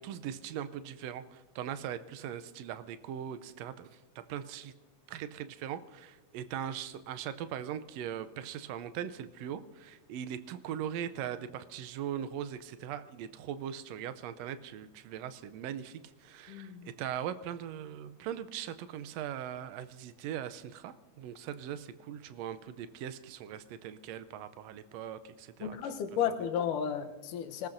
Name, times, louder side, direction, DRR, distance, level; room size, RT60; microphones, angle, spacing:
voice 1, 0.0-3.9 4.1-4.7 5.1-25.9 26.3-26.4, right 9 dB, 80° right, 12 dB, 1.5 m, -40 dB
voice 2, 16.5-16.9 25.6-27.7, left 8 dB, 85° left, 7 dB, 2.5 m, -33 dB
26.0 x 19.0 x 2.6 m, 1.1 s
omnidirectional pair, 3.6 m